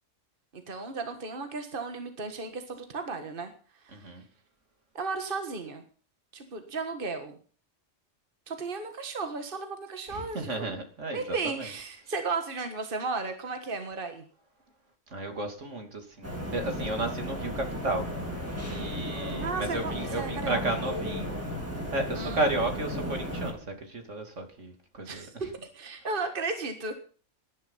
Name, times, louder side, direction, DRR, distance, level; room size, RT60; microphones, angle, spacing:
voice 1, 0.5-3.5 3.8-4.1 4.9-5.8 6.3-7.4 8.5-10.8 11.1-14.2 19.4-20.6 22.1-22.5 25.0-25.3 25.7-26.9, right 4 dB, 45° right, 7 dB, 1.8 m, -34 dB
voice 2, 3.9-4.2 10.1-11.7 15.1-18.0 18.7-21.3 21.9-25.2, right 2 dB, 75° right, 5 dB, 3.1 m, -33 dB
sound 1, 16.2-23.5, equal, 10° right, 4.6 m, -34 dB
18.0 x 10.5 x 5.6 m, 0.43 s
omnidirectional pair, 1.3 m